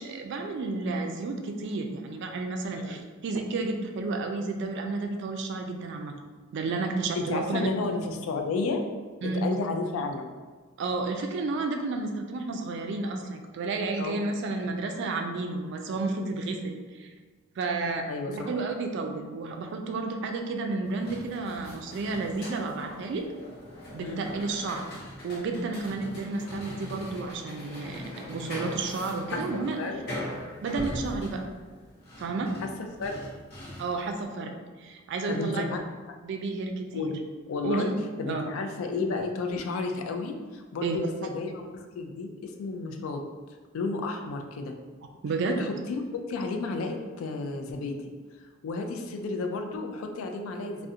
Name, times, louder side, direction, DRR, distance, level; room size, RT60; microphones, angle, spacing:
voice 1, 0.0-6.1 6.5-7.7 9.2-9.5 10.8-17.1 17.6-23.3 23.9-24.9 25.2-29.8 30.6-31.4 32.2-32.6 33.8-35.6 36.2-37.1 37.6-38.0 38.3-38.5 40.8-41.0 45.2-45.6, right 3 dB, 60° right, 4 dB, 0.3 m, -31 dB
voice 2, 7.2-8.8 9.3-10.3 14.0-14.2 18.0-18.5 24.0-24.2 29.3-30.0 32.6-32.7 33.0-33.2 35.3-35.8 36.1-36.2 36.9-37.9 38.2-43.2 43.7-44.8 45.6-48.1 48.6-50.9, left 3 dB, 85° left, 4 dB, 0.3 m, -32 dB
sound 1, 20.9-34.1, left 1 dB, 50° left, 0.8 m, -41 dB
2.4 x 2.1 x 2.7 m, 1.4 s
head